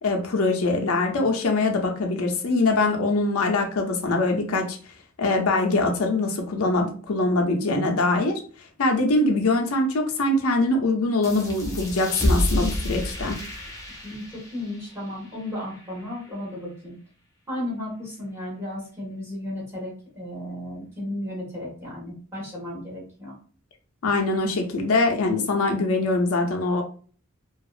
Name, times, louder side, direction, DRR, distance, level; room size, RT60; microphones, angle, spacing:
voice 1, 0.0-4.8 5.2-8.4 8.8-13.4 24.0-26.8, left 2 dB, 85° left, 3 dB, 0.5 m, -23 dB
sound 1, 11.2-16.5, equal, 15° left, 0.5 m, -29 dB
voice 2, 14.5-16.9 17.5-23.3, left 1 dB, 15° right, -5 dB, 1.3 m, -34 dB
2.8 x 2.3 x 2.4 m, 0.42 s
head